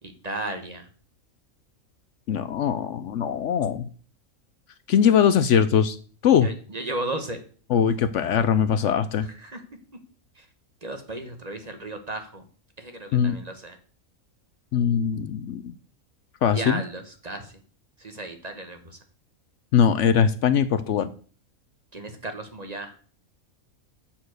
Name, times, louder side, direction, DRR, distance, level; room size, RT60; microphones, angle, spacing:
voice 1, 0.0-0.9 6.4-7.4 9.3-9.6 10.4-10.5 10.8-12.4 12.8-13.8 16.5-17.5 18.0-19.0 21.9-22.9, right 2 dB, 30° right, 6 dB, 1.1 m, -34 dB
voice 2, 2.3-3.9 4.9-6.0 6.2-6.5 7.7-9.3 13.1-13.4 14.7-15.7 16.4-16.8 19.7-21.1, left 8 dB, 65° left, 13 dB, 0.9 m, -21 dB
7.3 x 7.0 x 6.3 m, 0.43 s
omnidirectional pair, 1.5 m